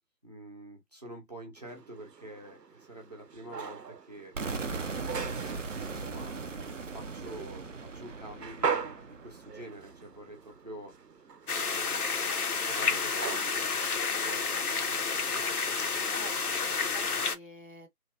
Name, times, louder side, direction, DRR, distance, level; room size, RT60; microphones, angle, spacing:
voice 1, 0.2-4.3 5.9-10.9 11.6-12.0 12.6-15.4, right 1 dB, 25° right, 0.7 m, -47 dB
sound 1, 1.6-15.3, right 6 dB, 80° right, 0.8 m, -41 dB
sound 2, 4.3-10.2, right 4 dB, 55° right, 0.5 m, -38 dB
sound 3, 11.5-17.4, left 5 dB, 65° left, 0.8 m, -30 dB
voice 2, 16.1-17.9, equal, 35° left, 0.6 m, -49 dB
3.1 x 2.2 x 2.6 m
figure-of-eight pair, 155°, 48 cm